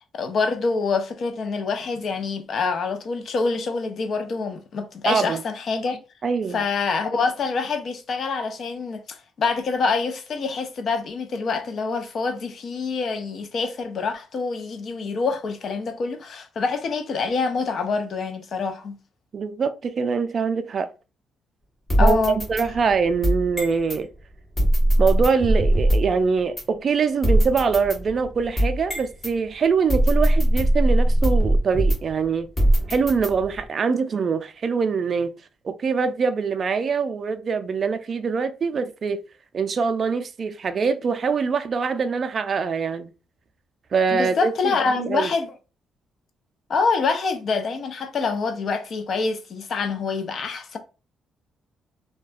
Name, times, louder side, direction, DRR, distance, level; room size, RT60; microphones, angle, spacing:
voice 1, 0.1-6.0 6.5-19.0 22.0-22.4 44.1-45.5 46.7-50.8, left 4 dB, 55° left, 0.5 m, -26 dB
voice 2, 5.1-5.4 6.2-6.6 19.3-20.9 22.0-24.1 25.0-32.5 32.9-35.3 35.6-39.2 39.5-43.1 43.9-44.5 45.0-45.3, right 5 dB, 45° right, 0.3 m, -23 dB
sound 1, 21.9-24.0 24.6-26.2 26.6-26.7 27.2-29.3 29.9-32.2 32.6-33.7, right 1 dB, 30° left, 1.1 m, -21 dB
2.3 x 2.2 x 2.4 m
cardioid pair, 90°, 0 cm